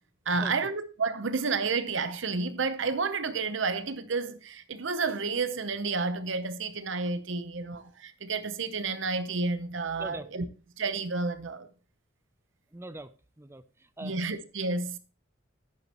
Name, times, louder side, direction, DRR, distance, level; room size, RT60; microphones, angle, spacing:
voice 1, 0.3-10.4 10.8-11.7 14.0-15.0, right 4 dB, 65° right, 0.8 m, -30 dB
voice 2, 12.7-14.2, right 2 dB, 10° right, 0.4 m, -42 dB
10.5 x 9.6 x 3.0 m
head